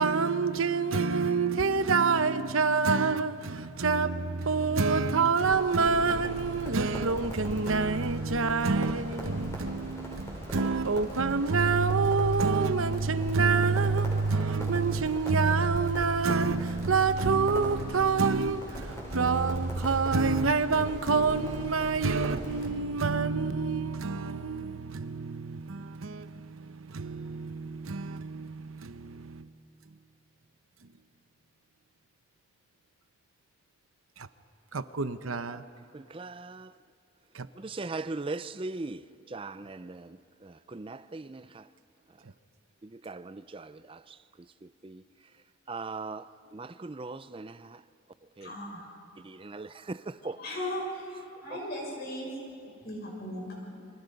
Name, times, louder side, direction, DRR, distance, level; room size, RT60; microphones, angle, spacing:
voice 1, 0.0-29.5 34.2-34.3 34.7-35.6 37.3-37.5, right 4 dB, 90° right, 0.9 m, -27 dB
Crackle, 5.4-22.7, equal, 15° left, 6.0 m, -41 dB
voice 2, 35.9-36.7 37.6-39.0 39.3-40.1 40.7-41.4 43.1-43.7 44.8-45.0 45.7-46.2 46.5-47.5 48.4-48.5 49.3-50.4, right 3 dB, 25° right, 0.5 m, -38 dB
voice 3, 48.4-48.9 50.2-52.3 52.8-53.7, left 1 dB, 50° left, 6.6 m, -37 dB
29.5 x 25.0 x 5.3 m
head